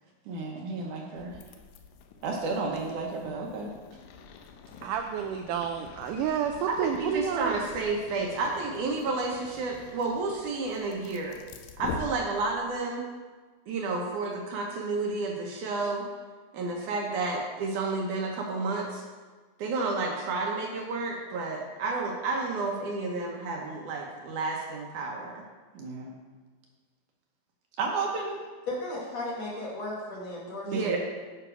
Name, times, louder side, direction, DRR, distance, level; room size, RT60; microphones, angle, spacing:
voice 1, 0.3-1.4 2.2-3.7 6.7-11.4 11.8-13.0 13.7-16.1 16.5-19.0 19.6-25.4 25.7-26.2 27.8-28.4 30.7-31.0, right 3 dB, 70° right, 0 dB, 2.2 m, -31 dB
sound 1, 1.2-12.7, left 5 dB, 80° left, 2.4 m, -45 dB
voice 2, 4.8-7.5, right 8 dB, 85° right, 4 dB, 1.8 m, -30 dB
voice 3, 28.7-31.0, left 2 dB, 60° left, -4 dB, 2.0 m, -35 dB
10.0 x 5.9 x 4.9 m, 1.4 s
omnidirectional pair, 4.2 m